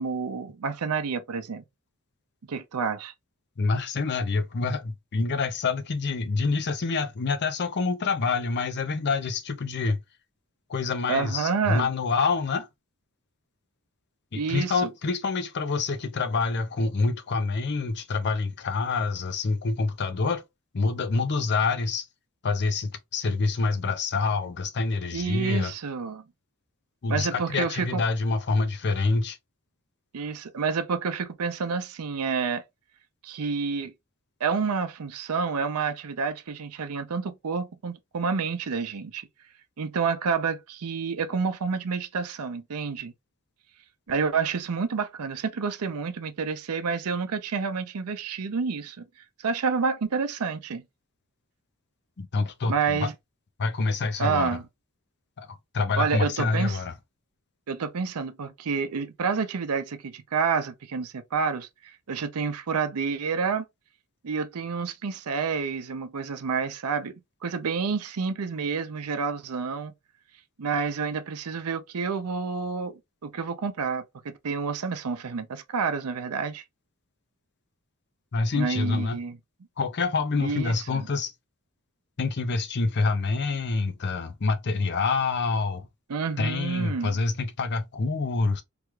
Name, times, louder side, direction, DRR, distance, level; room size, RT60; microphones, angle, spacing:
voice 1, 0.0-1.6 2.5-3.1 11.1-11.9 14.3-14.8 25.1-26.2 27.1-28.0 30.1-32.6 33.2-33.9 34.4-39.3 39.8-43.1 44.1-49.0 49.4-50.8 52.7-53.1 54.2-54.6 56.0-56.8 57.7-61.7 62.1-63.6 64.2-67.1 67.4-69.9 70.6-76.6 78.5-79.4 80.4-81.1 86.1-87.2, right 5 dB, 90° right, 0.6 m, -29 dB
voice 2, 3.6-10.0 10.7-12.7 14.3-20.4 20.7-22.1 22.4-25.7 27.0-29.4 52.2-53.1 53.6-54.6 55.4-56.9 78.3-79.2 79.8-81.3 82.2-85.9 86.4-88.6, left 4 dB, 50° left, 0.6 m, -27 dB
3.4 x 2.3 x 3.1 m
head